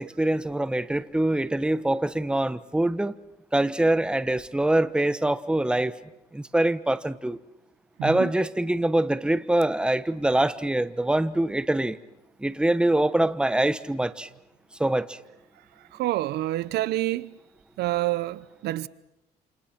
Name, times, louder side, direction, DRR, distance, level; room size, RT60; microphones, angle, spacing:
voice 1, 0.0-3.1 3.5-5.9 6.3-7.4 8.0-12.0 12.4-14.3 14.8-15.2, right 1 dB, 5° right, 1.1 m, -24 dB
voice 2, 8.0-8.3 15.9-17.3 17.8-18.9, right 16 dB, 75° right, 0.9 m, -27 dB
28.5 x 28.5 x 5.9 m
cardioid pair, 110°, 17 cm